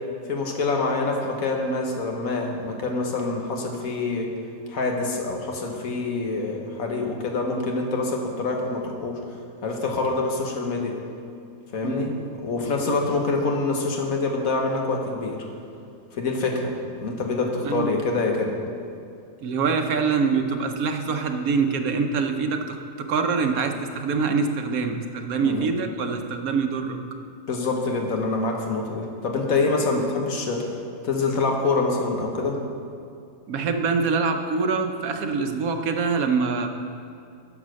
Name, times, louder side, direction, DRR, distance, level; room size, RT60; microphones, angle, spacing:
voice 1, 0.3-4.3 4.7-9.2 9.6-10.9 11.7-12.1 12.4-15.4 16.1-18.5 25.4-25.7 27.5-30.6 31.0-32.6, left 3 dB, 80° left, 2 dB, 1.6 m, -26 dB
voice 2, 19.4-27.0 33.5-36.7, right 5 dB, 90° right, 6 dB, 1.3 m, -24 dB
9.7 x 6.3 x 6.4 m, 2.5 s
omnidirectional pair, 1.5 m